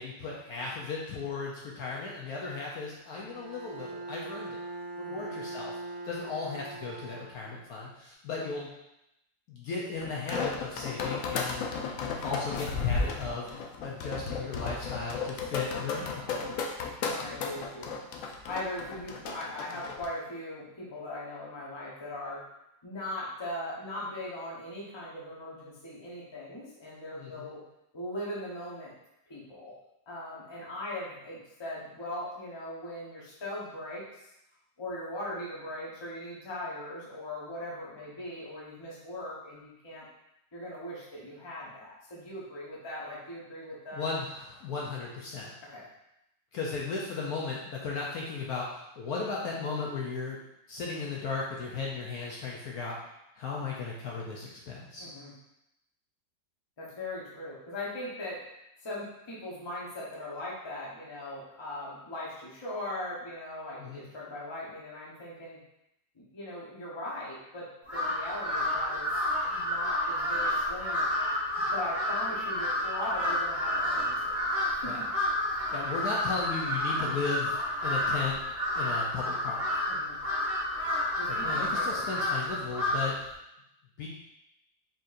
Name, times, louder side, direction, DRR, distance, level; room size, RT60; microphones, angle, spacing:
voice 1, 0.0-4.6 5.0-5.8 6.0-8.7 9.5-11.8 12.1-13.5 13.8-16.3 27.2-27.5 43.9-45.5 46.5-50.4 50.7-53.0 53.4-55.1 63.8-64.0 74.8-75.0 75.7-78.4 78.8-79.6 81.2-83.2 84.0-84.1, left 4 dB, 70° left, -3 dB, 1.0 m, -36 dB
Bowed string instrument, 3.2-7.7, right 2 dB, 65° right, 1.1 m, -41 dB
sound 1, 10.0-20.1, left 4 dB, 90° left, 0.7 m, -34 dB
voice 2, 17.0-17.9 18.5-22.4 22.8-27.6 27.9-28.9 29.3-29.7 30.1-34.0 34.8-40.0 40.5-44.0 45.7-45.8 55.0-55.3 56.8-58.4 58.8-65.6 66.1-67.7 67.9-69.1 69.4-71.0 71.6-74.4 74.8-74.9 79.9-80.2 81.2-82.1, left 1 dB, 25° left, -6 dB, 0.6 m, -39 dB
Crow, 67.9-83.2, left 1 dB, 30° right, 1.2 m, -30 dB
4.2 x 3.8 x 2.5 m, 0.85 s
omnidirectional pair, 2.0 m